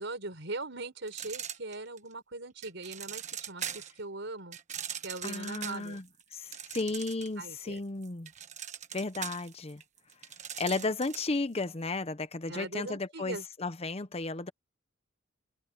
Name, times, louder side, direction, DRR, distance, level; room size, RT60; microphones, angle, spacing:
voice 1, 0.0-4.6 5.0-6.0 7.4-7.8 10.6-10.9 12.5-13.4, right 2 dB, 65° right, 5.8 m, -40 dB
sound 1, 1.1-2.1 2.6-4.0 4.5-7.5 7.8-11.4, right 9 dB, 40° right, 1.3 m, -41 dB
voice 2, 5.2-6.0 6.3-8.3 8.9-9.8 10.6-14.5, left 3 dB, 30° left, 0.8 m, -34 dB
head